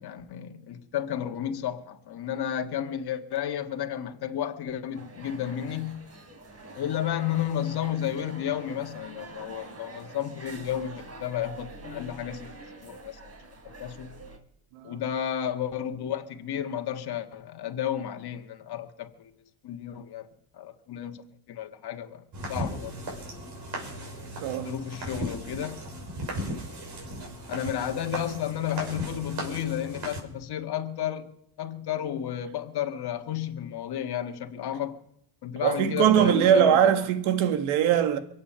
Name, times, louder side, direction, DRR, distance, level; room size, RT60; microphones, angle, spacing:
voice 1, 0.0-6.1 6.8-12.5 12.8-13.3 13.6-14.1 14.8-19.3 19.6-20.3 20.5-21.2 21.5-23.0 24.6-25.8 27.5-35.0 35.4-36.8, left 10 dB, 50° left, 1.7 m, -32 dB
sound 1, 4.9-14.4, right 2 dB, 30° right, 3.2 m, -45 dB
sound 2, 22.3-30.2, equal, 55° right, 6.5 m, -36 dB
voice 2, 24.4-24.7 35.6-38.2, right 9 dB, 80° right, 1.8 m, -21 dB
23.5 x 8.6 x 5.7 m
supercardioid pair, 85°, 49 cm